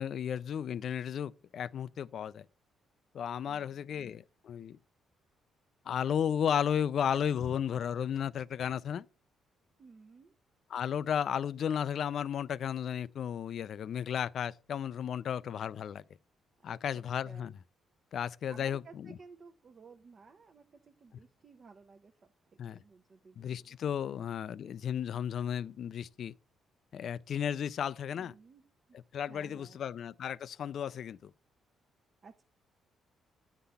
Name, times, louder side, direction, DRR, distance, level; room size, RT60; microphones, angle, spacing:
voice 1, 0.0-2.4 3.1-4.8 5.9-9.0 10.7-16.0 16.6-17.5 18.1-19.1 22.6-22.8 23.4-26.3 26.9-28.3 29.1-31.3, left 8 dB, 60° left, 0.4 m, -34 dB
voice 2, 9.8-10.3 16.7-17.5 18.5-24.2 28.1-28.6 28.9-29.0 29.3-29.9 32.2-32.4, right 4 dB, 45° right, 0.8 m, -56 dB
9.8 x 3.9 x 6.9 m
cardioid pair, 90°, 0 cm